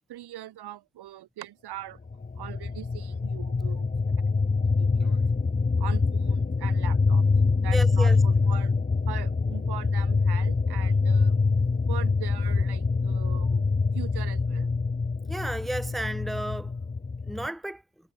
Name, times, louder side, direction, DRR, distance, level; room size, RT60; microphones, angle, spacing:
voice 1, 0.1-2.0 2.4-3.9 4.8-5.2 5.8-7.3 7.5-8.7 9.1-11.4 11.9-14.7, right 13 dB, 70° right, 2.7 m, -41 dB
sound 1, 2.1-17.5, left 4 dB, 20° left, 1.3 m, -25 dB
voice 2, 7.7-8.2 15.3-16.7 17.3-17.8, right 1 dB, ahead, 1.0 m, -32 dB
supercardioid pair, 60°, 41 cm